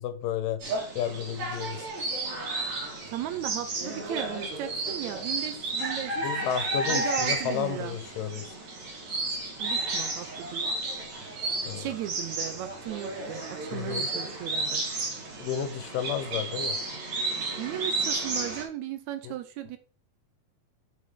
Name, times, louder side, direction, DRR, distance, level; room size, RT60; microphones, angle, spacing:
voice 1, 0.0-1.8 6.2-8.5 11.7-11.9 13.7-14.1 15.4-16.8 19.2-19.3, left 8 dB, 80° left, 10 dB, 2.5 m, -32 dB
sound 1, 0.6-18.6, right 2 dB, 60° right, 3.3 m, -32 dB
voice 2, 3.1-6.3 6.9-8.0 9.6-10.8 11.7-14.8 17.6-19.8, right 11 dB, 80° right, 10 dB, 1.7 m, -36 dB
6.3 x 6.3 x 3.7 m, 0.38 s
omnidirectional pair, 3.8 m